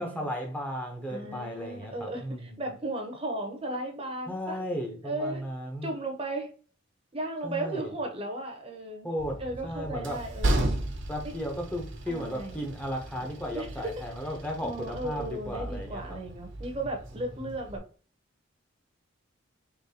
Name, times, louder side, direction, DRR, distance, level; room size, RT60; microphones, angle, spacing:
voice 1, 0.0-2.7 4.3-5.9 7.4-7.9 9.0-10.2 11.1-16.2 17.4-17.5, equal, 10° left, 0.6 m, -35 dB
voice 2, 1.1-4.6 5.0-5.4 5.8-6.5 7.1-9.1 9.4-10.7 11.2-11.3 12.1-12.5 13.5-13.9 14.6-17.8, right 1 dB, 30° right, 0.6 m, -35 dB
Train, 9.2-17.8, right 1 dB, 70° right, 0.8 m, -35 dB
3.8 x 3.6 x 2.7 m
head